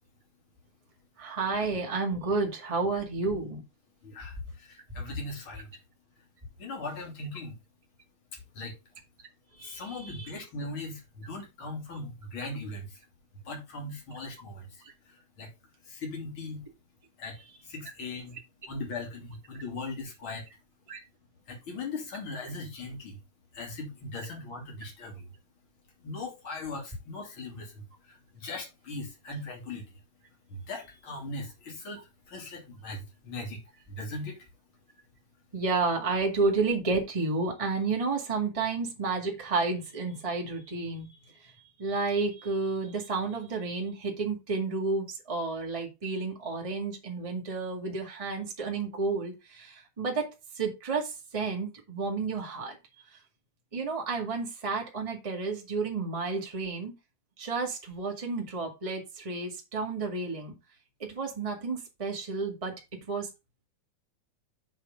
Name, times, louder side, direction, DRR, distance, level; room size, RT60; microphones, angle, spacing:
voice 1, 1.2-3.6 9.6-10.3 20.9-21.0 35.5-41.5 41.8-52.8 53.1-53.2 53.7-56.9 57.4-60.5 61.0-62.8 63.1-63.3, right 4 dB, 15° right, 1.6 m, -31 dB
voice 2, 4.0-5.8 6.6-7.6 8.5-8.8 9.6-13.0 13.4-15.5 15.8-16.6 17.2-17.4 17.6-18.4 18.7-20.4 21.5-23.2 23.5-25.3 26.0-29.8 30.5-34.5, left 2 dB, 45° left, 3.3 m, -39 dB
7.8 x 4.4 x 5.2 m
omnidirectional pair, 3.3 m